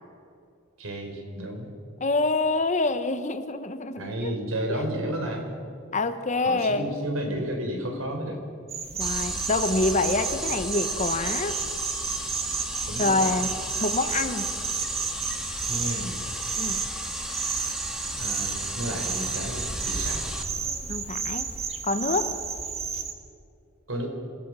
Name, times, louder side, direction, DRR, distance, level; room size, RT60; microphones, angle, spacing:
voice 1, 0.8-1.7 4.0-5.6 6.5-8.4 12.9-13.3 15.7-16.2 18.1-20.3 23.9-24.1, right 1 dB, 75° right, 3 dB, 4.1 m, -32 dB
voice 2, 2.0-4.4 4.7-4.9 5.9-6.9 9.0-11.6 13.0-13.5 13.8-14.5 16.6-16.8 20.9-21.5 21.8-22.3, left 2 dB, 35° left, 10 dB, 1.1 m, -26 dB
sound 1, 8.7-23.1, right 6 dB, 30° right, 1.6 m, -32 dB
sound 2, 9.0-20.4, equal, 5° right, 1.6 m, -35 dB
27.0 x 17.0 x 6.2 m, 2.4 s
head